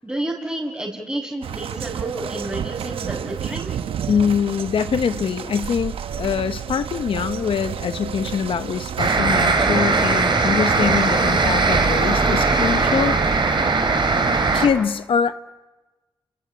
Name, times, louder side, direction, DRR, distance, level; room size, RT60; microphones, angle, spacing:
voice 1, 0.0-3.7, right 1 dB, 15° right, -4 dB, 6.6 m, -30 dB
sound 1, 1.4-9.2, right 8 dB, 80° right, 0.9 m, -31 dB
voice 2, 4.1-13.2 13.6-13.7 14.5-15.3, left 7 dB, 70° left, 11 dB, 0.9 m, -23 dB
sound 2, 9.0-14.7, right 4 dB, 55° right, 4.2 m, -19 dB
29.0 x 22.0 x 8.6 m, 1.2 s
supercardioid pair, 45°, 9 cm